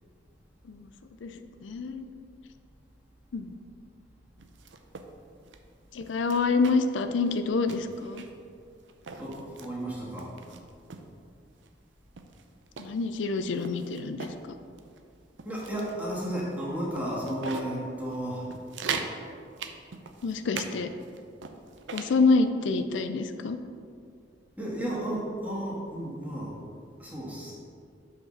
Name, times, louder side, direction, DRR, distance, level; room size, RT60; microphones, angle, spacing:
voice 1, 1.6-2.1 3.3-3.5 5.9-8.2 12.8-14.3 20.2-20.9 21.9-23.6, left 4 dB, 85° left, 9 dB, 0.4 m, -27 dB
sound 1, 4.4-5.1 5.5-5.6 6.0-7.0 7.3-7.4 7.7-8.4 8.9-9.7 10.2-11.1 11.6-11.7 12.2-14.4 14.8-15.0 15.4-16.0 16.5-16.6 16.9-17.7 18.1-18.2 18.5-19.2 19.6-20.7 21.0-22.1, right 5 dB, 80° right, 0.6 m, -39 dB
voice 2, 9.2-10.3 15.4-18.5 24.6-26.6 27.0-27.5, right 1 dB, 10° right, -6 dB, 1.8 m, -33 dB
6.1 x 5.1 x 6.3 m, 2.3 s
head